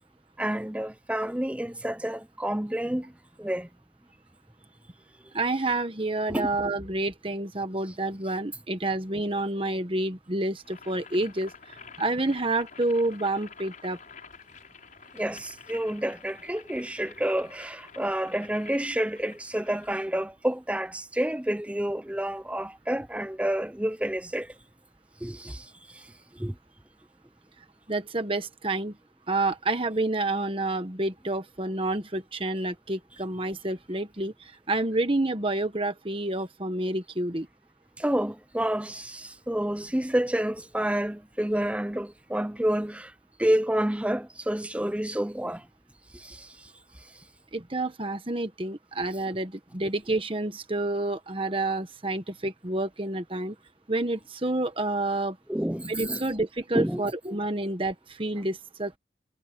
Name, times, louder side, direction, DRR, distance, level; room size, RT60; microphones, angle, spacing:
voice 1, 0.4-3.1 3.4-3.7 6.3-6.5 15.1-24.5 25.2-26.5 38.0-43.1 43.4-45.7 46.1-47.1 55.5-56.2 56.7-57.1, right 1 dB, 5° right, 0.6 m, -29 dB
voice 2, 5.3-14.0 27.9-28.9 29.3-37.5 47.5-53.5 53.9-55.4 55.8-59.0, right 2 dB, 30° right, 1.4 m, -29 dB
Boiling, 10.6-20.0, left 6 dB, 45° left, 5.2 m, -49 dB
head